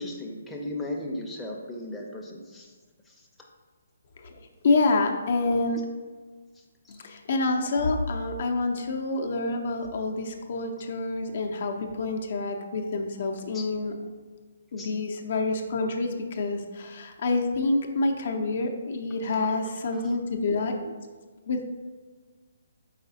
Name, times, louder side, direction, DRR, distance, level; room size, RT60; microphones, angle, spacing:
voice 1, 0.0-2.7 3.1-3.3 6.8-7.0 13.5-13.7 14.8-14.9 19.9-20.0, left 1 dB, 5° left, -3 dB, 0.5 m, -36 dB
voice 2, 4.2-5.8 6.9-13.9 14.7-20.9 21.5-21.6, left 3 dB, 55° left, 4 dB, 0.5 m, -27 dB
4.8 x 3.9 x 2.7 m, 1.4 s
hypercardioid pair, 145°, 0 cm